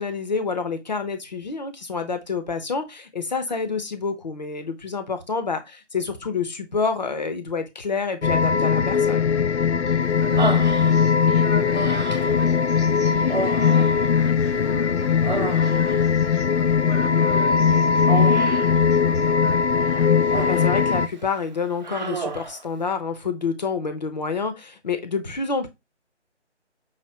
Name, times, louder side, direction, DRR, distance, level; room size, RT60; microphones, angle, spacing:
voice 1, 0.0-9.3 20.2-25.7, left 5 dB, 35° left, 0.8 m, -28 dB
sound 1, 8.2-21.1, left 6 dB, 65° left, 0.5 m, -20 dB
voice 2, 9.8-19.6, equal, 5° right, 0.8 m, -39 dB
Human voice, 10.4-11.3 11.7-12.5 13.2-14.7 15.0-16.1 18.1-18.8 19.8-20.8 21.2-21.4 21.8-22.6, right 4 dB, 40° right, 0.8 m, -30 dB
5.7 x 2.9 x 2.9 m
figure-of-eight pair, 150°, 36 cm